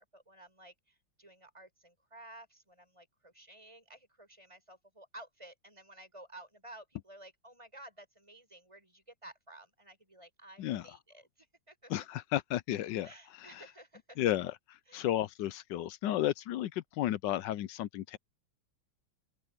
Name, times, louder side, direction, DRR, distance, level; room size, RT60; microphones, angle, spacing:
voice 1, 0.0-11.9 13.0-14.2 14.9-15.1, right 1 dB, 15° right, 6.9 m, -54 dB
voice 2, 11.9-13.1 13.5-13.6 14.2-18.2, left 13 dB, 70° left, 1.1 m, -33 dB
open air
omnidirectional pair, 2.2 m